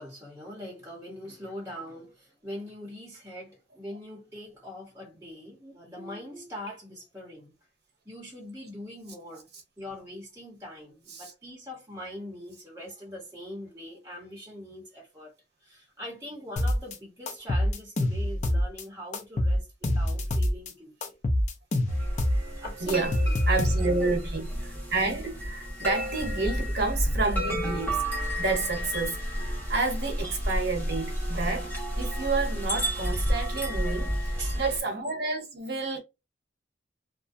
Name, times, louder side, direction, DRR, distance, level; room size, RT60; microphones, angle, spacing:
voice 1, 0.0-7.5 8.0-9.5 9.8-15.3 15.6-19.7 19.9-21.1 22.6-23.4 23.8-24.1 26.4-26.5 33.9-34.7, equal, 15° right, 0.9 m, -42 dB
sound 1, 16.6-17.0 17.3-18.8 19.1-20.7 21.0-24.1, left 1 dB, 40° left, 0.5 m, -26 dB
sound 2, 21.9-34.8, equal, 10° left, 1.0 m, -31 dB
voice 2, 22.8-23.2 23.5-28.0 28.4-29.2 29.7-36.0, right 3 dB, 60° right, 0.9 m, -30 dB
2.5 x 2.1 x 2.5 m
head